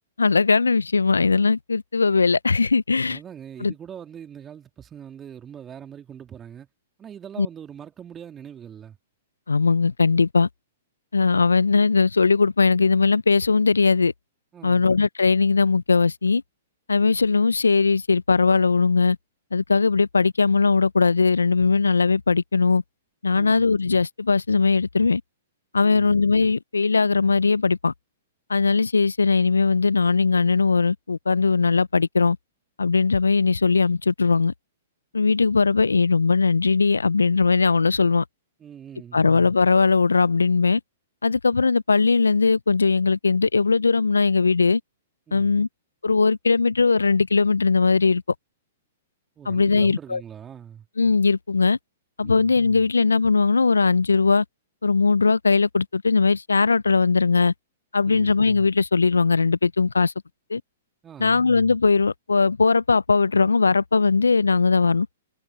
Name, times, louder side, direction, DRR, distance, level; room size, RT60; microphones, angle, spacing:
voice 1, 0.2-3.2 3.6-3.7 7.4-7.5 9.5-10.5 11.1-14.1 14.6-16.4 16.9-19.2 19.5-22.8 23.2-25.2 25.7-27.9 28.5-32.4 32.8-34.5 35.1-38.2 39.1-40.8 41.2-44.8 45.3-45.7 46.0-48.2 49.5-50.2 51.0-51.8 52.2-54.4 54.8-57.5 57.9-60.1 60.5-60.6 61.2-65.1, left 4 dB, 85° left, 0.5 m, -19 dB
voice 2, 3.1-6.7 7.0-9.0 14.5-15.0 23.3-23.7 25.8-26.2 38.6-39.3 45.3-45.6 49.4-50.9 52.2-52.5 58.0-58.3 61.0-61.4, right 8 dB, 20° right, 2.9 m, -42 dB
figure-of-eight pair, 115°, 0 cm